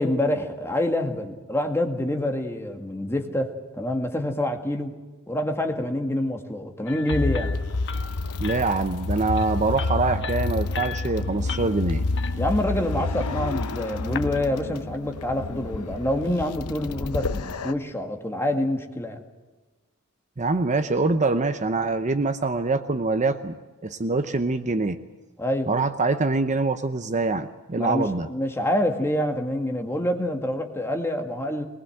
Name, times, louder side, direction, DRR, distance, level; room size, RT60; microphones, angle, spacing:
voice 1, 0.0-4.9 5.3-7.5 12.4-19.2 25.4-25.7 27.8-31.6, left 1 dB, 10° left, 4 dB, 2.0 m, -26 dB
sound 1, 6.9-14.4, left 7 dB, 55° left, 1.3 m, -39 dB
sound 2, 7.1-17.7, left 3 dB, 85° left, 0.8 m, -29 dB
voice 2, 8.4-12.0 20.4-23.5 23.8-25.0 25.7-28.3, right 3 dB, 35° right, 9 dB, 0.8 m, -24 dB
23.0 x 20.0 x 7.9 m, 1.3 s
head